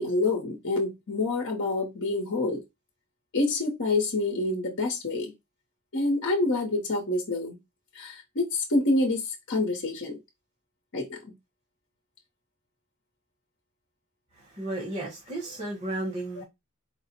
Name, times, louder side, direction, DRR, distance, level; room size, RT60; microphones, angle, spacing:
voice 1, 0.0-2.6 3.3-5.3 5.9-7.6 7.9-10.2 10.9-11.2 16.4-16.5, left 2 dB, 55° left, 0.9 m, -27 dB
voice 2, 14.4-16.4, right 2 dB, 30° right, 1.4 m, -33 dB
4.5 x 2.0 x 4.1 m
head